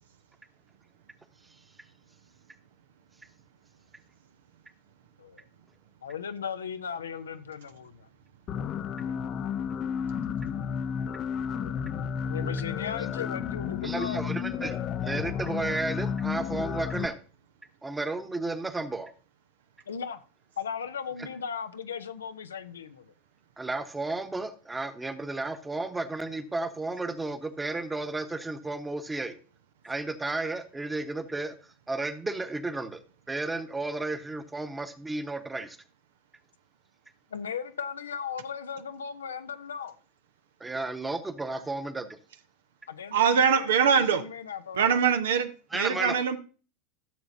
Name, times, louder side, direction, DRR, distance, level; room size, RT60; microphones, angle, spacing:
voice 1, 6.0-8.1 8.5-9.5 11.5-11.8 12.3-14.4 19.9-20.2 20.6-23.1 37.3-40.0 42.9-44.9 45.9-46.2, left 7 dB, 85° left, 0.6 m, -37 dB
sound 1, 8.5-17.1, left 7 dB, 40° left, 0.6 m, -32 dB
voice 2, 13.8-14.8 15.0-17.2 17.8-19.1 23.6-29.4 29.8-31.6 31.9-33.0 33.3-35.8 40.6-42.1 45.7-46.1, right 2 dB, 15° right, 1.1 m, -33 dB
voice 3, 43.1-44.2 44.7-46.4, right 7 dB, 75° right, 0.8 m, -23 dB
13.5 x 6.8 x 2.7 m
hypercardioid pair, 90°, 0 cm